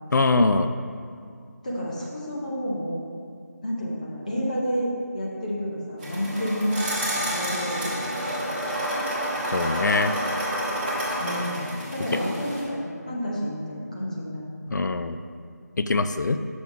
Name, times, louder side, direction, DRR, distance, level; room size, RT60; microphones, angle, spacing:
voice 1, 0.1-0.8 9.5-10.1 14.7-15.2 15.8-16.4, left 3 dB, 85° left, 9 dB, 0.4 m, -22 dB
voice 2, 1.6-3.0 3.6-8.3 11.2-14.4, equal, 25° left, -4 dB, 0.9 m, -30 dB
sound 1, 6.0-12.6, equal, 30° right, 1.6 m, -29 dB
6.1 x 3.7 x 6.0 m, 2.2 s
figure-of-eight pair, 175°, 10 cm